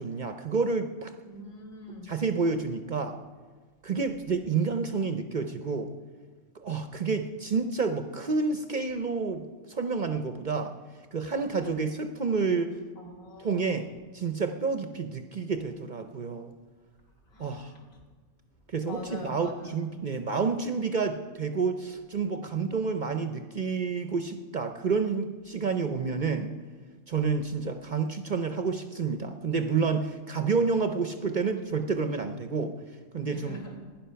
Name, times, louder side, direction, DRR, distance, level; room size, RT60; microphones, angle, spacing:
voice 1, 0.0-1.1 2.0-3.2 3.8-5.9 6.6-10.8 11.1-12.7 13.4-16.5 17.4-17.7 18.7-26.5 27.1-32.8 33.1-33.6, right 4 dB, 50° right, 7 dB, 0.6 m, -29 dB
voice 2, 1.2-2.1 11.5-11.8 13.0-13.8 17.3-17.8 18.8-20.0 33.3-33.8, left 1 dB, 65° left, -1 dB, 2.7 m, -44 dB
16.0 x 10.5 x 5.7 m, 1.5 s
omnidirectional pair, 1.5 m